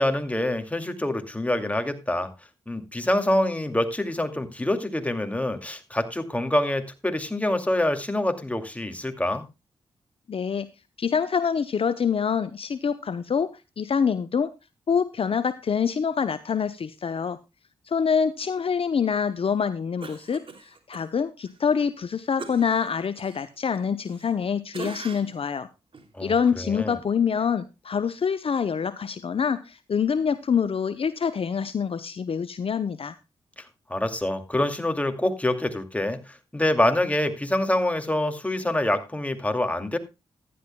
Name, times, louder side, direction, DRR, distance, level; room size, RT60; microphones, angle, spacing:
voice 1, 0.0-2.3 2.7-9.4 26.1-27.0 33.6-40.0, left 1 dB, 10° left, 7 dB, 2.4 m, -26 dB
voice 2, 10.3-10.7 11.0-14.5 14.9-17.4 17.9-25.7 26.2-33.2, left 6 dB, 55° left, 13 dB, 0.7 m, -26 dB
Cough, 20.0-21.0 21.4-21.6 22.4-24.4 24.7-25.4 25.9-26.1, right 4 dB, 50° right, 2.8 m, -41 dB
15.0 x 11.0 x 2.2 m, 0.25 s
cardioid pair, 50°, 11 cm